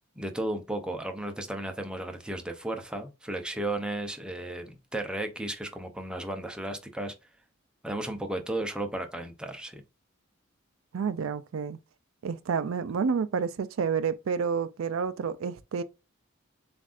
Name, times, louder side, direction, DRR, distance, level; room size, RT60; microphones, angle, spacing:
voice 1, 0.2-7.1 7.8-9.8, right 1 dB, 5° right, 0.6 m, -34 dB
voice 2, 10.9-11.8 12.2-15.8, right 6 dB, 80° right, 0.4 m, -29 dB
7.2 x 2.5 x 2.5 m
head